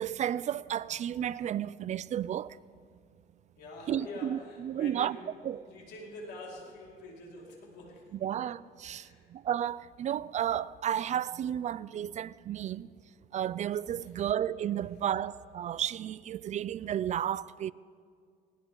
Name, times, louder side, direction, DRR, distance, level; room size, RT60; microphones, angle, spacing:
voice 1, 0.0-2.6 3.9-5.2 5.4-5.6 8.2-12.9 13.3-17.7, right 10 dB, 45° right, 0.4 m, -32 dB
voice 2, 3.6-8.4 8.8-9.3 14.0-14.1, left 2 dB, 80° left, 4.8 m, -46 dB
20.0 x 18.5 x 3.9 m
cardioid pair, 110°, 17 cm